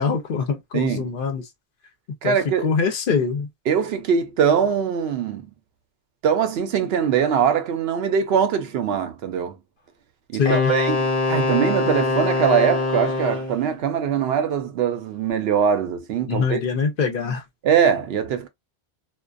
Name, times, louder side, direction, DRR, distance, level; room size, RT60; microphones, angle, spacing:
voice 1, 0.0-1.4 2.2-2.3 2.6-3.5 10.4-10.7 16.3-17.4, left 5 dB, 60° left, 0.7 m, -23 dB
voice 2, 0.7-1.1 2.2-2.7 3.7-5.5 6.2-9.6 10.3-16.6 17.6-18.5, right 7 dB, 75° right, 0.8 m, -22 dB
Wind instrument woodwind instrument, 10.5-13.6, left 3 dB, 35° left, 0.9 m, -23 dB
2.3 x 2.2 x 2.4 m
omnidirectional pair, 1.0 m